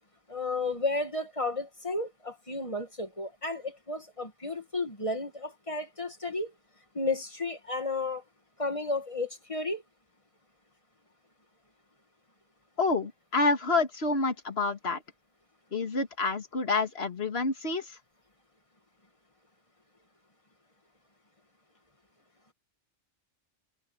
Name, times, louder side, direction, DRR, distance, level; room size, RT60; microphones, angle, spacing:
voice 1, 0.3-6.5 6.9-8.2 8.6-9.8, left 2 dB, 25° left, 2.1 m, -33 dB
voice 2, 12.8-15.0 15.7-18.0, left 3 dB, 60° left, 2.3 m, -28 dB
omnidirectional pair, 1.2 m